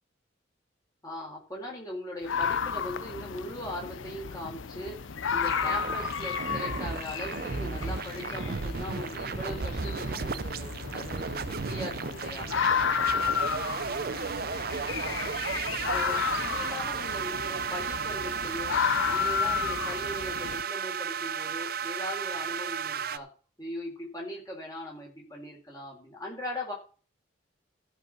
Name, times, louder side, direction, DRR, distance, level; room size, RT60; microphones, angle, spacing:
voice 1, 1.0-5.0 5.3-12.5 15.0-15.3 15.9-18.8 19.1-23.3 23.6-26.7, left 1 dB, 20° left, -1 dB, 4.2 m, -39 dB
sound 1, 2.2-20.6, left 7 dB, 80° left, 0.6 m, -32 dB
sound 2, 5.4-23.2, right 6 dB, 50° right, 0.5 m, -34 dB
14.5 x 5.6 x 6.0 m, 0.36 s
head